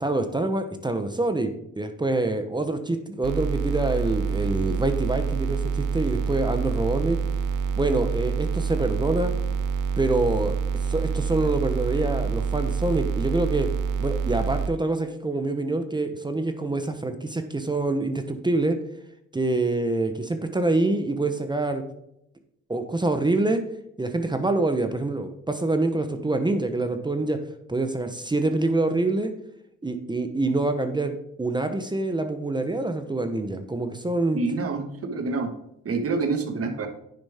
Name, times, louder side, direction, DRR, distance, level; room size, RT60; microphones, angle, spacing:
voice 1, 0.0-7.2 7.8-9.3 10.0-13.7 14.0-18.8 19.3-21.8 22.7-23.6 24.0-27.4 27.7-29.3 29.8-34.4, right 2 dB, 15° right, 8 dB, 0.9 m, -26 dB
sound 1, 3.2-14.7, right 6 dB, 85° right, 0.8 m, -27 dB
voice 2, 34.3-35.5 35.8-36.9, right 3 dB, 50° right, 6 dB, 1.6 m, -27 dB
9.8 x 7.1 x 3.6 m, 0.78 s
cardioid pair, 90°, 30 cm